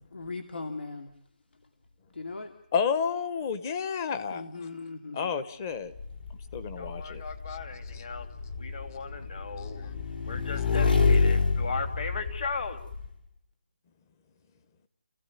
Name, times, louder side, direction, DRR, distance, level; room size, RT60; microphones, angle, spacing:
voice 1, 0.1-1.1 2.1-2.5 4.3-5.3, left 3 dB, 80° left, 6 dB, 2.5 m, -38 dB
voice 2, 2.7-4.7 5.1-5.9 6.5-7.2 7.5-7.6 7.9-8.0 9.6-9.9 10.9-11.3, left 6 dB, 20° left, 12 dB, 1.0 m, -31 dB
Motorcycle / Engine, 6.0-13.1, left 4 dB, 60° left, 4.5 m, -28 dB
voice 3, 6.8-8.3 8.6-9.9 10.3-12.8, left 4 dB, 45° left, 7 dB, 3.0 m, -37 dB
29.5 x 16.0 x 9.4 m, 0.72 s
hypercardioid pair, 175°, 6 cm